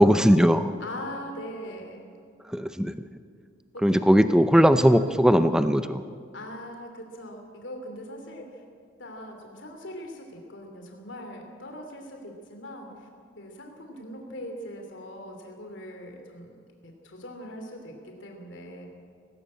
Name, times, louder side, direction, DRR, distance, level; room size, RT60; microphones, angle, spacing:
voice 1, 0.0-0.7 2.5-3.0 3.8-6.0, equal, 5° right, 10 dB, 0.6 m, -19 dB
voice 2, 0.8-2.1 3.7-4.3 6.3-8.6 9.0-13.1 13.4-16.6 16.8-18.8, equal, 75° left, 3 dB, 2.8 m, -41 dB
18.0 x 17.0 x 8.5 m, 2.2 s
head